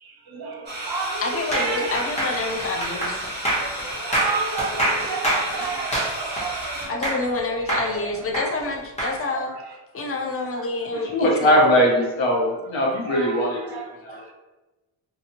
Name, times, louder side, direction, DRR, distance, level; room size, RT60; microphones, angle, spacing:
voice 1, 0.0-2.0 3.6-7.2 9.3-9.4 10.6-10.7 13.0-14.3, right 4 dB, 55° right, 3 dB, 0.6 m, -31 dB
sound 1, 0.7-6.9, right 1 dB, 20° right, 1.5 m, -33 dB
voice 2, 1.2-3.2 6.9-9.5 9.9-11.5, left 2 dB, 30° left, 2 dB, 0.6 m, -28 dB
sound 2, 1.5-7.4 7.7-9.2, right 1 dB, 15° left, 1.0 m, -26 dB
voice 3, 11.1-13.8 14.0-14.2, equal, 75° left, -3 dB, 1.1 m, -20 dB
2.7 x 2.5 x 2.9 m, 1.1 s
cardioid pair, 90°, 46 cm